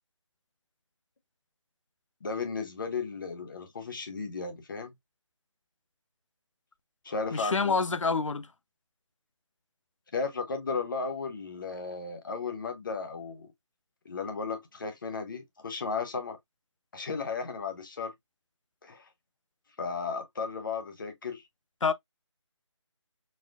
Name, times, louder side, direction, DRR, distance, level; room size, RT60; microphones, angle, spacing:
voice 1, 2.2-4.9 7.0-7.7 10.1-13.5 14.0-16.4 16.9-18.1 18.8-19.1 19.8-21.4, left 4 dB, 45° left, 0.8 m, -34 dB
voice 2, 7.3-8.5 21.8-21.9, left 4 dB, 90° left, 0.5 m, -27 dB
4.2 x 2.3 x 2.4 m
figure-of-eight pair, 160°, 16 cm